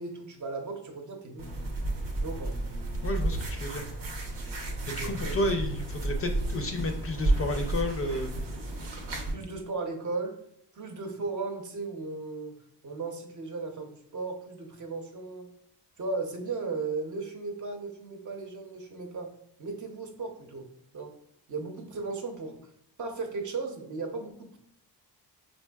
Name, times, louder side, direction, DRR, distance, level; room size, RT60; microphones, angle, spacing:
voice 1, 0.0-1.5 2.2-2.6 5.0-5.3 9.3-10.4 10.7-12.6 12.8-15.5 16.0-19.3 19.6-20.7 20.9-21.1 21.5-22.6 23.0-24.6, right 3 dB, 50° right, 4 dB, 0.7 m, -36 dB
sound 1, 1.4-9.3, right 2 dB, 85° right, 0.8 m, -32 dB
voice 2, 3.0-3.8 4.9-8.4, left 1 dB, 35° left, 4 dB, 0.4 m, -31 dB
4.4 x 2.6 x 2.2 m, 0.71 s
cardioid pair, 105°, 40 cm